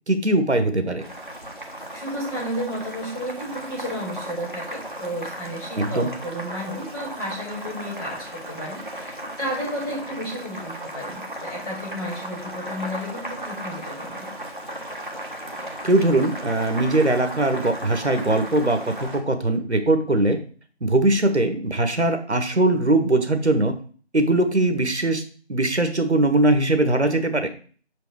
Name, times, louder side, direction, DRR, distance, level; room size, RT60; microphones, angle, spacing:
voice 1, 0.1-1.0 5.8-6.1 15.8-20.4 20.8-23.7 24.1-25.2 25.5-27.5, right 2 dB, 75° right, 8 dB, 1.3 m, -21 dB
Boiling, 1.0-19.2, right 1 dB, 45° right, 1.4 m, -36 dB
voice 2, 1.9-14.3, equal, 20° left, -12 dB, 3.8 m, -32 dB
6.2 x 5.2 x 4.7 m, 0.42 s
figure-of-eight pair, 180°, 34 cm